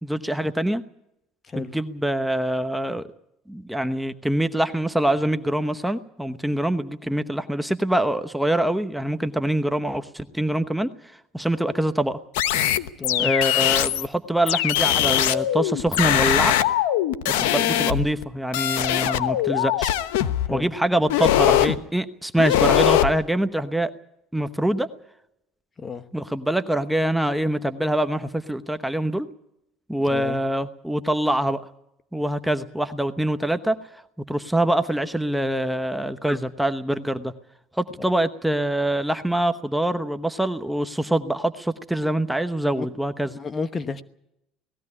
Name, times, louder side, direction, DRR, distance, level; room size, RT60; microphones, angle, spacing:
voice 1, 0.0-0.8 1.5-3.1 3.5-10.9 11.3-12.2 13.2-16.6 17.3-19.9 20.5-23.9 24.3-24.9 26.1-29.3 29.9-31.6 32.1-34.0 34.3-37.3 37.8-43.3, right 1 dB, 5° right, 10 dB, 1.0 m, -24 dB
sound 1, 12.3-14.1 14.5-18.2 18.5-20.5 21.1-21.8 22.4-23.1, left 12 dB, 90° left, 1.0 m, -21 dB
voice 2, 13.0-13.3 20.4-20.7 25.8-26.0 30.1-30.4 42.8-42.9 43.3-44.0, left 5 dB, 30° left, 13 dB, 1.1 m, -31 dB
19.0 x 15.0 x 9.8 m, 0.81 s
supercardioid pair, 100°, 0 cm